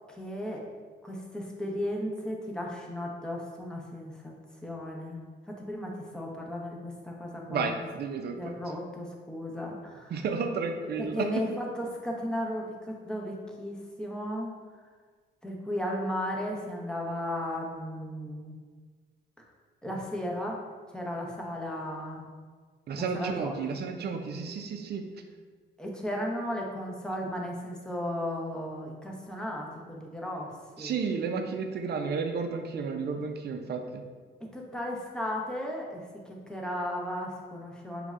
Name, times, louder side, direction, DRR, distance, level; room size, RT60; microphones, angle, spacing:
voice 1, 0.1-0.6 1.0-4.3 4.6-7.7 8.4-10.1 11.0-14.5 15.4-18.5 19.8-20.6 20.9-22.2 23.0-23.5 25.8-30.5 30.8-30.9 34.5-38.1, equal, 5° left, -2 dB, 0.8 m, -35 dB
voice 2, 7.5-8.5 10.1-11.4 22.9-25.1 30.8-34.0, right 5 dB, 55° right, 5 dB, 0.5 m, -32 dB
5.0 x 3.2 x 2.4 m, 1.5 s
cardioid pair, 90°, 20 cm